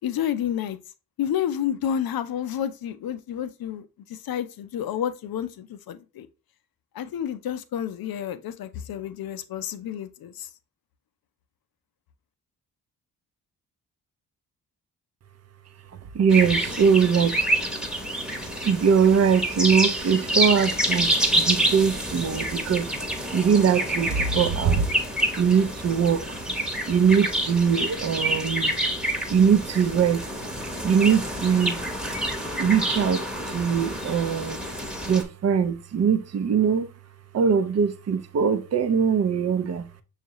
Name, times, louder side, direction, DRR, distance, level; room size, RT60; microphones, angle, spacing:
voice 1, 0.0-0.8 1.2-3.8 4.1-6.3 6.9-10.5, left 9 dB, 55° left, 0.6 m, -30 dB
voice 2, 15.9-17.5 18.6-22.9 23.3-25.0 25.4-26.4 26.9-31.8 32.6-34.6 35.1-36.9 37.3-39.9, right 6 dB, 35° right, 0.6 m, -22 dB
sound 1, 16.3-35.2, right 1 dB, ahead, 1.0 m, -27 dB
6.1 x 2.4 x 2.9 m
hypercardioid pair, 40°, 44 cm